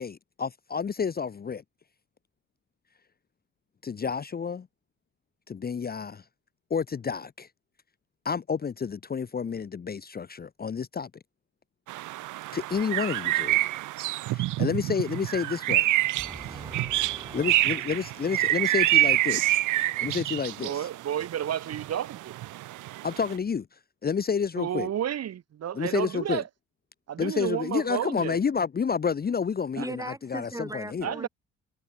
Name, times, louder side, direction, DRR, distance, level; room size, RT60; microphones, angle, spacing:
voice 1, 0.0-1.6 3.8-4.7 5.5-6.2 6.7-7.5 8.2-11.1 12.5-13.7 14.3-15.9 17.3-19.6 20.0-20.9 23.0-23.7 24.0-24.9 25.7-26.4 27.2-31.1, left 6 dB, 30° left, 0.9 m, -30 dB
sound 1, 11.9-23.4, right 17 dB, 85° right, 0.9 m, -27 dB
voice 2, 16.2-18.3 29.8-31.3, right 2 dB, 10° right, 4.1 m, -40 dB
voice 3, 20.6-22.4 24.5-26.5 27.1-28.4 29.7-29.9 31.0-31.3, right 10 dB, 55° right, 1.2 m, -31 dB
cardioid pair, 90°, 30 cm